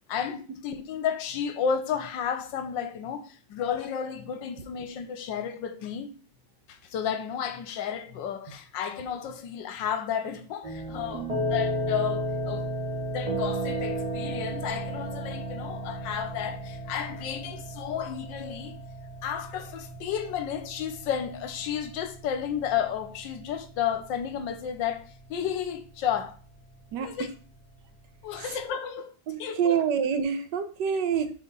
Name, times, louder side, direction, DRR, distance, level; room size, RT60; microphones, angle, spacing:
voice 1, 0.1-6.1 6.7-12.7 13.1-18.8 19.2-26.4 27.0-27.3 28.2-29.1 29.4-29.8, left 8 dB, 80° left, 1.4 m, -32 dB
sound 1, 10.6-28.6, right 1 dB, 25° right, 0.9 m, -35 dB
voice 2, 26.9-27.3 28.4-28.6 29.3-31.3, right 7 dB, 70° right, 1.4 m, -27 dB
4.6 x 4.6 x 5.4 m
omnidirectional pair, 2.0 m